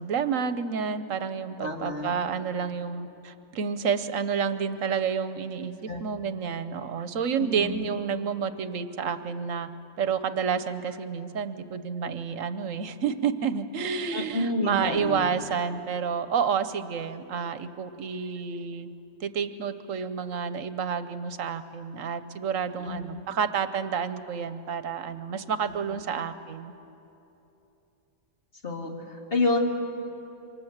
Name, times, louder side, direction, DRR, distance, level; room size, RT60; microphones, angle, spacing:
voice 1, 0.0-9.7 10.0-18.9 19.2-26.7, right 6 dB, 80° right, 11 dB, 1.3 m, -30 dB
voice 2, 1.6-2.1 5.9-6.0 7.4-7.8 14.1-15.3 22.8-23.0 25.8-25.9 28.6-29.6, left 2 dB, 45° left, 0 dB, 2.8 m, -29 dB
27.0 x 24.5 x 7.4 m, 2.9 s
omnidirectional pair, 1.3 m